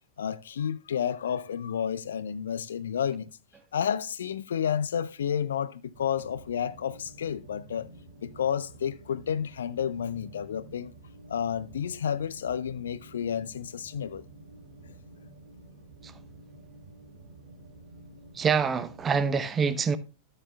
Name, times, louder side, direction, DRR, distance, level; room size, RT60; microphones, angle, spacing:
voice 1, 0.2-3.3 3.7-7.9 8.2-10.9 11.3-14.2, left 8 dB, 65° left, 0.4 m, -31 dB
sound 1, 5.9-19.4, right 2 dB, 55° right, 2.4 m, -50 dB
voice 2, 18.3-20.0, right 6 dB, 20° right, 0.7 m, -26 dB
13.5 x 8.8 x 2.2 m
figure-of-eight pair, 90°, 0 cm